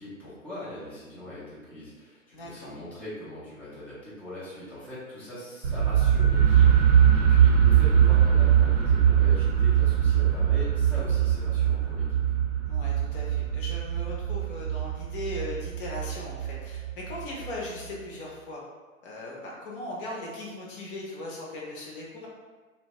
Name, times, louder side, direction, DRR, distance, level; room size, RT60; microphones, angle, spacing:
voice 1, 0.0-12.2, left 1 dB, 5° left, -11 dB, 0.6 m, -41 dB
voice 2, 2.3-2.7 11.2-11.3 12.7-18.6 19.0-22.3, left 1 dB, 40° left, -3 dB, 0.8 m, -38 dB
sound 1, 5.6-17.5, right 9 dB, 70° right, 0.7 m, -22 dB
2.8 x 2.1 x 2.9 m, 1.4 s
figure-of-eight pair, 115°, 41 cm